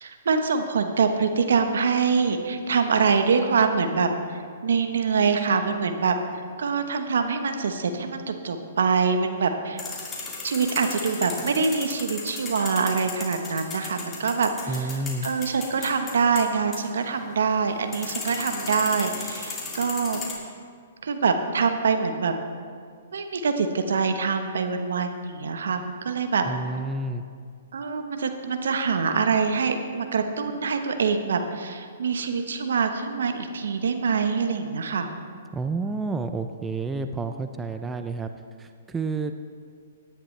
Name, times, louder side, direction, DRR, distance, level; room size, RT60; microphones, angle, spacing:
voice 1, 0.0-9.8 10.4-14.9 15.2-20.2 21.0-22.3 23.1-26.4 27.7-35.1, right 5 dB, 75° right, 7 dB, 1.1 m, -25 dB
sound 1, 9.8-20.3, left 4 dB, 20° left, 2.5 m, -36 dB
voice 2, 14.7-15.3 26.4-27.2 35.5-38.3 38.6-39.3, right 3 dB, 10° right, 7 dB, 0.5 m, -30 dB
17.5 x 10.5 x 3.3 m, 2.1 s
hypercardioid pair, 125°, 0 cm